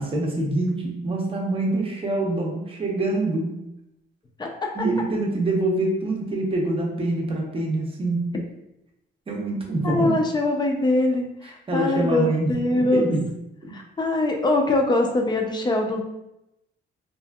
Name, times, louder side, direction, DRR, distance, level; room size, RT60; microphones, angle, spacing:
voice 1, 0.0-3.6 4.7-8.3 9.3-10.2 11.4-13.3, right 2 dB, 30° right, -1 dB, 0.6 m, -25 dB
voice 2, 9.8-13.1 13.7-16.0, left 2 dB, 20° left, 2 dB, 0.4 m, -23 dB
2.6 x 2.5 x 2.3 m, 0.87 s
cardioid pair, 105°, 20 cm